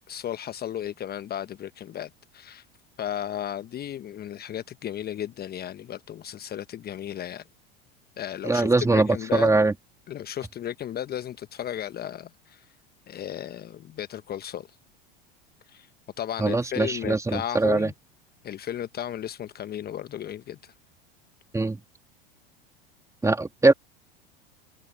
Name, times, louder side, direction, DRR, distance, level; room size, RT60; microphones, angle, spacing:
voice 1, 0.1-2.6 3.0-7.4 8.2-9.6 10.1-12.6 13.1-14.7 15.7-15.9 16.2-17.9 18.4-20.7, left 10 dB, 35° left, 1.1 m, -34 dB
voice 2, 8.4-9.7 16.4-17.9 21.5-21.8 23.2-23.7, right 3 dB, 10° right, 2.3 m, -22 dB
hypercardioid pair, 85°, 29 cm